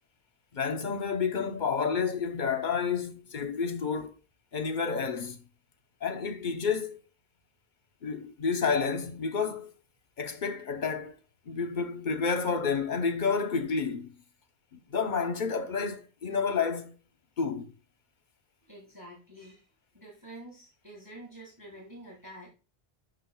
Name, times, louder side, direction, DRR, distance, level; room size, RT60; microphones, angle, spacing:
voice 1, 0.5-4.1 4.5-5.4 6.0-7.0 8.0-9.7 10.2-11.2 11.5-14.1 14.7-17.0 17.4-17.7, left 5 dB, 50° left, 1.0 m, -30 dB
voice 2, 18.6-19.7 19.9-22.5, right 1 dB, 20° right, 2.1 m, -48 dB
11.0 x 5.4 x 2.3 m
omnidirectional pair, 1.1 m